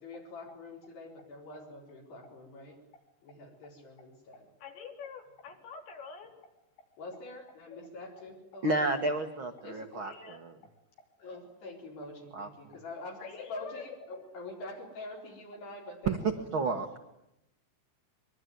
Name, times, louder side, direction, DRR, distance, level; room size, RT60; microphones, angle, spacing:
voice 1, 0.0-2.8 3.2-4.5 7.0-8.9 9.6-10.1 11.2-16.5, left 2 dB, 65° left, -1 dB, 6.2 m, -45 dB
voice 2, 4.6-6.3 7.7-7.8 10.0-10.4 13.2-14.0, left 6 dB, 85° left, 4 dB, 5.7 m, -46 dB
voice 3, 8.6-10.5 12.3-12.5 16.1-16.2 16.5-17.0, right 2 dB, 80° right, 6 dB, 1.1 m, -31 dB
24.5 x 23.5 x 9.4 m, 0.86 s
omnidirectional pair, 5.0 m